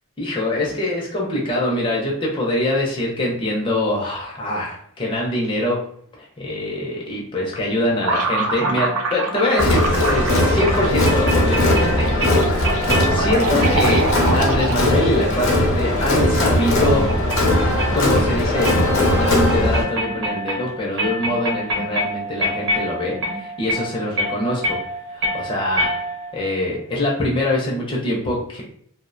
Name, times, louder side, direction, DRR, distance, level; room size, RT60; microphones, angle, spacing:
voice 1, 0.2-5.8 6.2-12.8 13.1-17.1 17.9-24.8 25.1-25.9 26.3-28.6, left 1 dB, 25° left, -3 dB, 0.4 m, -24 dB
sound 1, 8.0-15.2, right 3 dB, 85° right, 0.5 m, -26 dB
sound 2, 8.6-26.5, equal, 60° right, 0.8 m, -28 dB
Crowd, 9.6-19.8, left 1 dB, 65° left, 0.7 m, -19 dB
2.5 x 2.0 x 2.5 m, 0.63 s
head